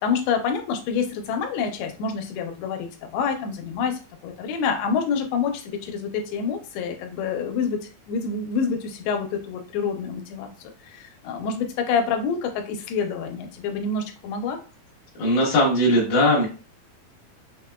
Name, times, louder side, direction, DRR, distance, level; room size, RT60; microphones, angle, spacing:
voice 1, 0.0-14.6, left 6 dB, 85° left, 4 dB, 2.6 m, -27 dB
voice 2, 15.2-16.5, left 1 dB, 65° left, -8 dB, 2.0 m, -19 dB
6.0 x 2.1 x 2.2 m, 0.35 s
omnidirectional pair, 4.5 m